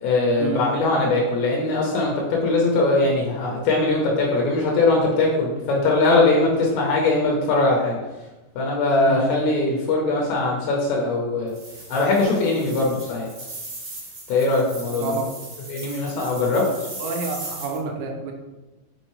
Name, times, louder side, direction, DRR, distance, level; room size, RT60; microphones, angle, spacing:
voice 1, 0.0-8.0 8.6-11.5 11.9-13.3 14.3-15.2 15.7-16.6, left 2 dB, 80° left, -2 dB, 3.1 m, -21 dB
sound 1, 11.5-17.8, right 2 dB, 55° right, 1.5 m, -38 dB
voice 2, 17.0-18.3, right 4 dB, 85° right, 2 dB, 2.9 m, -29 dB
6.1 x 5.5 x 3.1 m, 1.1 s
omnidirectional pair, 5.3 m